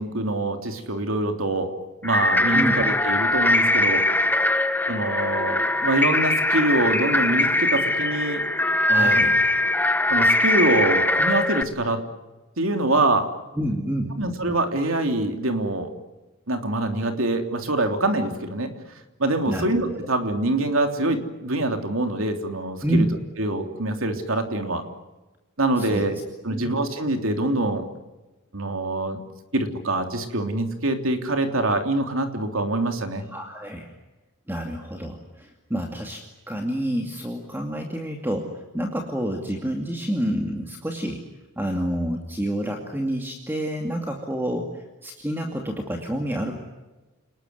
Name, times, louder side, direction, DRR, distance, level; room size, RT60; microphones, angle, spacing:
voice 1, 0.0-1.7 2.0-4.1 4.9-8.4 8.9-9.2 10.1-12.0 12.6-13.3 14.2-15.9 16.5-18.7 19.2-23.1 23.4-24.8 25.6-26.2 26.4-27.8 28.5-29.2 29.5-33.2, right 2 dB, 65° right, 5 dB, 3.3 m, -24 dB
sound 1, 2.0-11.6, left 1 dB, 10° left, 1.1 m, -21 dB
voice 2, 8.9-9.3 13.6-14.2 19.4-19.6 22.8-23.1 25.8-26.0 26.5-26.7 33.3-33.9 34.5-36.2 36.5-41.2 41.6-46.5, right 1 dB, 10° right, 2 dB, 2.4 m, -28 dB
30.0 x 20.0 x 9.6 m, 1.1 s
head